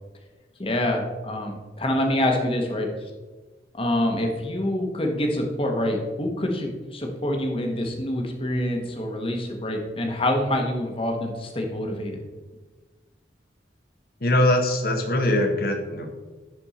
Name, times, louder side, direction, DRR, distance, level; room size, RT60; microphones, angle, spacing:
voice 1, 0.6-2.9 3.7-12.1, left 1 dB, 30° left, 2 dB, 1.2 m, -26 dB
voice 2, 14.2-16.1, left 1 dB, 50° left, 5 dB, 1.1 m, -22 dB
10.5 x 4.4 x 4.2 m, 1.3 s
head